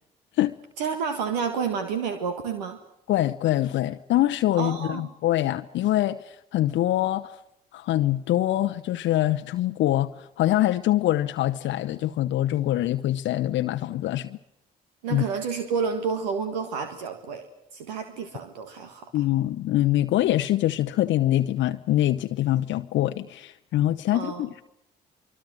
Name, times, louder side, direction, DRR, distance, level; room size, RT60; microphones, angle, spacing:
voice 1, 0.8-2.8 4.6-5.1 15.0-17.4 17.7-19.2 24.1-24.5, right 6 dB, 80° right, 1.7 m, -30 dB
voice 2, 3.1-7.4 7.7-14.4 15.1-15.2 19.1-24.6, left 14 dB, 60° left, 0.8 m, -24 dB
24.5 x 24.5 x 6.3 m
hypercardioid pair, 45°, 21 cm